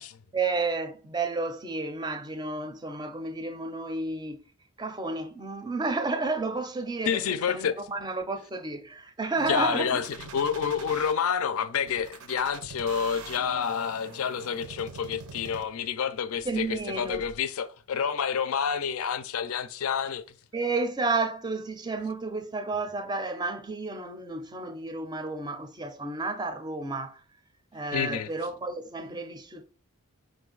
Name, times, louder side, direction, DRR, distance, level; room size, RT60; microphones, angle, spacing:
voice 1, 0.3-4.4 4.8-10.0 16.4-17.2 20.5-27.2 27.7-29.6, right 3 dB, 20° right, 0.5 m, -31 dB
voice 2, 7.1-7.8 9.5-10.1 10.3-20.2 27.9-28.3, left 7 dB, 75° left, 0.4 m, -28 dB
sound 1, 9.4-11.1 11.9-15.9 16.4-17.4, right 4 dB, 85° right, 0.7 m, -44 dB
4.8 x 2.6 x 3.8 m
head